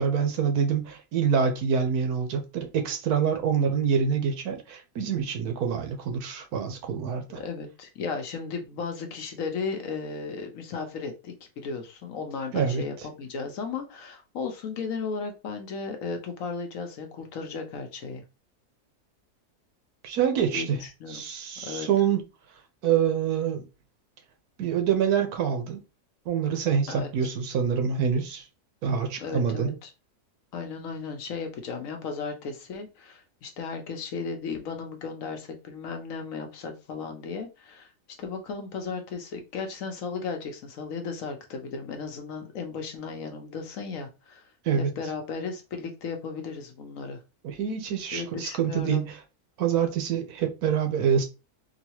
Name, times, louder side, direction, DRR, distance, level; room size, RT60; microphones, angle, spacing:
voice 1, 0.0-7.4 12.5-12.8 20.0-20.8 21.1-22.2 22.8-23.6 24.6-25.8 26.3-28.4 28.8-29.7 44.6-44.9 47.4-49.0 49.6-51.2, right 7 dB, 80° right, 1.3 m, -26 dB
voice 2, 7.4-18.2 20.5-21.2 21.6-21.9 26.9-27.3 29.2-29.9 30.5-37.9 38.2-44.5 44.8-47.2 48.1-49.1, left 5 dB, 65° left, 1.0 m, -35 dB
3.9 x 2.3 x 2.9 m
omnidirectional pair, 1.6 m